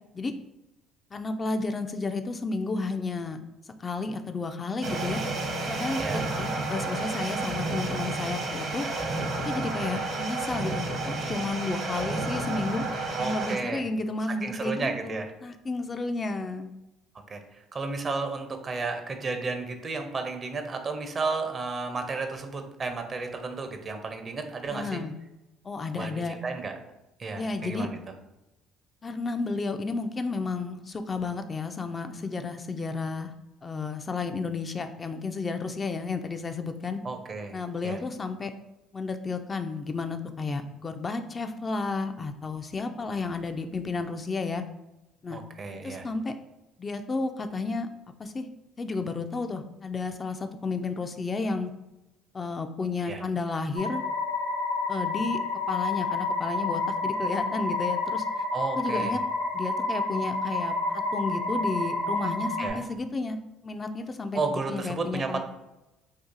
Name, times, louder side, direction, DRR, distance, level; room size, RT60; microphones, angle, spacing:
voice 1, 1.1-3.4 3.8-5.2 5.7-8.9 9.4-16.7 24.7-25.1 25.6-26.4 27.3-27.9 29.0-33.3 33.6-37.0 37.5-38.5 38.9-44.6 45.2-45.4 45.8-46.3 46.8-47.9 48.2-48.5 48.8-51.7 52.3-54.0 54.9-55.4 55.7-58.5 58.8-59.2 59.5-65.4, left 3 dB, 30° left, 7 dB, 0.3 m, -32 dB
sound 1, 4.8-13.6, right 2 dB, 60° right, 0.9 m, -31 dB
voice 2, 9.6-10.0 13.1-13.8 14.4-15.3 17.3-25.0 26.0-26.1 26.4-26.7 27.2-28.0 37.0-37.6 37.8-38.0 45.3-46.1 53.1-53.2 58.5-59.2 62.6-62.8 64.3-65.4, right 4 dB, 40° right, 6 dB, 0.6 m, -32 dB
sound 2, 53.8-62.7, left 3 dB, 90° left, 0.7 m, -29 dB
2.7 x 2.4 x 3.7 m, 0.97 s
hypercardioid pair, 60°, 0 cm